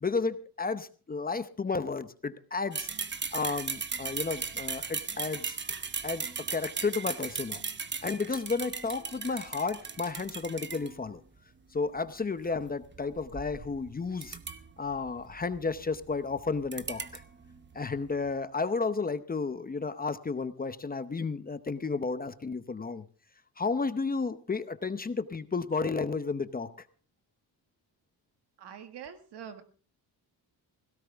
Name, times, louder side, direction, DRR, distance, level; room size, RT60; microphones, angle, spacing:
voice 1, 0.0-2.9 3.3-5.6 6.0-7.6 8.0-11.2 11.7-14.4 14.8-17.2 17.7-23.0 23.6-26.7, left 4 dB, 20° left, 12 dB, 0.8 m, -32 dB
sound 1, 2.7-11.2 12.4-18.3, right 5 dB, 25° right, 1.0 m, -38 dB
voice 2, 28.6-29.6, right 8 dB, 80° right, 7 dB, 2.0 m, -44 dB
17.5 x 16.5 x 3.5 m, 0.39 s
cardioid pair, 130°, 40 cm